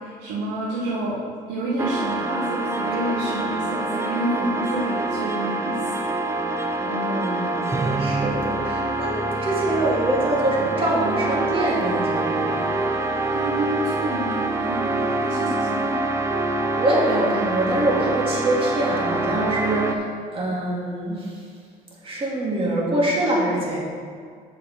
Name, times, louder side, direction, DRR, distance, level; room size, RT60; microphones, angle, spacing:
voice 1, 0.0-5.9 13.3-16.1, right 1 dB, 85° right, -6 dB, 1.6 m, -29 dB
sound 1, 1.8-20.0, right 2 dB, 15° right, 0.6 m, -25 dB
voice 2, 6.8-12.7 16.8-21.4 22.0-23.8, right 1 dB, 35° right, -4 dB, 2.4 m, -24 dB
8.3 x 6.5 x 4.2 m, 2.1 s
cardioid pair, 110°, 17 cm